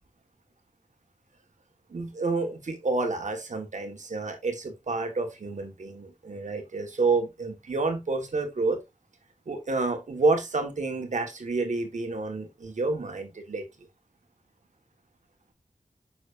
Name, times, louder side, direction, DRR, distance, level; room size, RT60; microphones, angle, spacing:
voice 1, 1.9-8.8 9.5-13.6, right 3 dB, 85° right, 1.5 m, -29 dB
6.9 x 6.1 x 2.6 m
wide cardioid pair, 75°, 12 cm